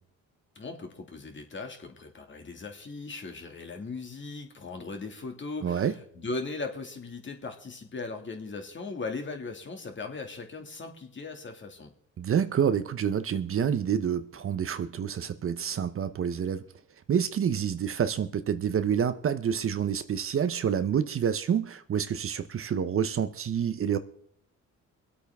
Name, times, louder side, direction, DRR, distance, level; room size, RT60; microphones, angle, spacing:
voice 1, 0.6-11.9, left 3 dB, 40° left, 2.2 m, -38 dB
voice 2, 5.6-5.9 12.2-16.6 17.1-24.0, right 8 dB, 45° right, 0.8 m, -28 dB
24.0 x 8.4 x 3.5 m
cardioid pair, 90°, 30 cm